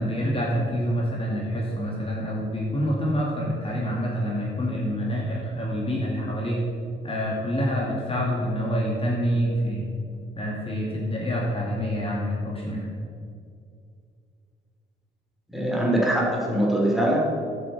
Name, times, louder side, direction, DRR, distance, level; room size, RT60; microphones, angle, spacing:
voice 1, 0.0-6.6 7.0-9.9 10.4-12.9, equal, 30° left, -3 dB, 2.3 m, -27 dB
voice 2, 15.5-17.2, right 1 dB, ahead, -3 dB, 3.1 m, -22 dB
10.0 x 7.3 x 7.3 m, 2.3 s
cardioid pair, 90°, 20 cm